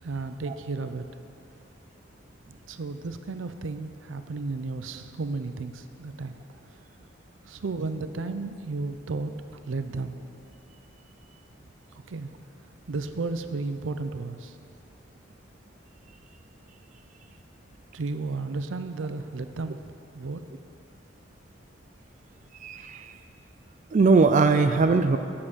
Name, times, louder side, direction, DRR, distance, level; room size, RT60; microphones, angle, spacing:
voice 1, 0.0-1.0 2.7-6.4 7.5-10.2 12.1-12.3 12.9-14.6 17.9-20.4, right 3 dB, 90° right, 10 dB, 0.5 m, -33 dB
voice 2, 22.6-23.0 23.9-25.2, right 4 dB, 40° right, 8 dB, 0.4 m, -20 dB
8.7 x 7.6 x 6.2 m, 2.6 s
head